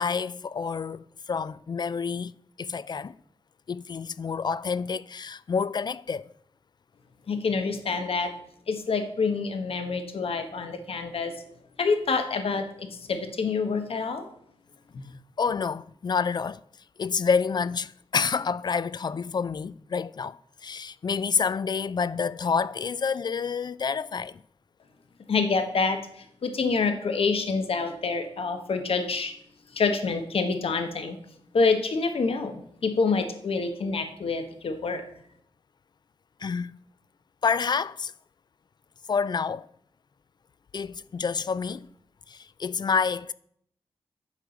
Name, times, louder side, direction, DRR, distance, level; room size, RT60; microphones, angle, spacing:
voice 1, 0.0-2.3 2.6-3.2 3.7-6.3 15.4-16.6 17.0-24.4 36.4-36.7 37.4-38.1 39.1-39.7 40.7-41.9 42.3-43.3, left 5 dB, 45° left, 0.3 m, -28 dB
voice 2, 7.3-8.4 8.7-11.3 11.8-14.3 14.9-15.1 25.3-29.3 29.7-31.2 31.5-35.0, left 4 dB, 70° left, 1.3 m, -27 dB
9.8 x 4.8 x 7.0 m
wide cardioid pair, 100°, 10 cm